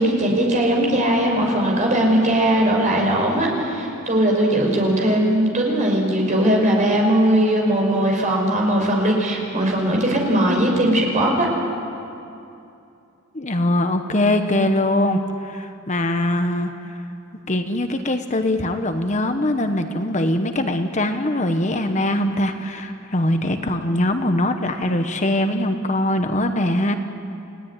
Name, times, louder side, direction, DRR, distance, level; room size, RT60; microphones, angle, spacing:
voice 1, 0.0-11.5, right 1 dB, 35° right, 0 dB, 5.4 m, -19 dB
voice 2, 13.3-16.7 17.5-26.9, left 1 dB, 35° left, 7 dB, 1.2 m, -22 dB
29.5 x 17.5 x 9.9 m, 2.6 s
head